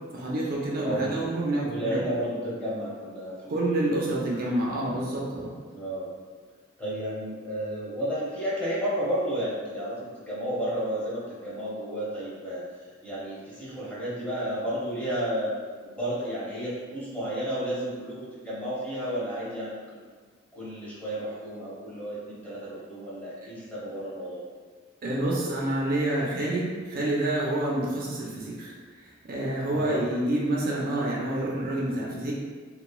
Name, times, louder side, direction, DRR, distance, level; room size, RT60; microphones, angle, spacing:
voice 1, 0.1-2.0 3.5-5.5 25.0-28.7 29.0-32.3, right 1 dB, 50° right, -4 dB, 0.4 m, -28 dB
voice 2, 0.8-1.2 1.6-4.0 5.7-6.1 6.8-12.6 13.0-15.5 15.8-20.1 20.5-24.4 29.6-30.0, equal, 10° left, -9 dB, 0.8 m, -32 dB
3.0 x 2.2 x 2.2 m, 1.5 s
head